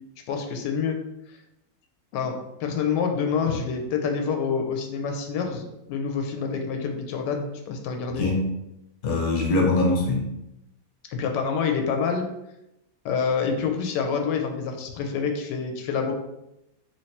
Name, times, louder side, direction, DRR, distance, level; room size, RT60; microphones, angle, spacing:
voice 1, 0.3-1.0 2.1-8.2 11.1-12.3 13.0-16.1, left 6 dB, 80° left, 4 dB, 1.2 m, -27 dB
voice 2, 8.1-8.5 9.0-10.3, left 2 dB, 40° left, 0 dB, 0.7 m, -23 dB
3.2 x 3.0 x 4.2 m, 0.88 s
omnidirectional pair, 1.9 m